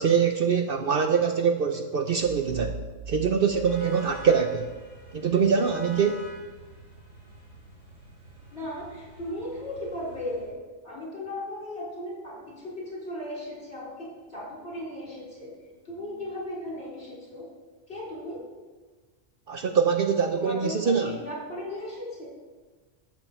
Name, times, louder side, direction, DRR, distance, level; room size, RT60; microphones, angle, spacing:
voice 1, 0.0-2.8 3.1-4.7 5.1-6.2 19.5-21.1, right 6 dB, 55° right, 6 dB, 0.8 m, -24 dB
sound 1, 2.2-4.8, right 3 dB, 20° right, 3.8 m, -40 dB
sound 2, 3.4-10.5, right 1 dB, 85° right, 3.4 m, -47 dB
voice 2, 8.5-10.6 10.8-15.5 15.8-17.5 17.9-18.5 20.3-22.3, left 1 dB, 55° left, -5 dB, 4.1 m, -36 dB
12.0 x 8.0 x 4.4 m, 1.4 s
omnidirectional pair, 1.3 m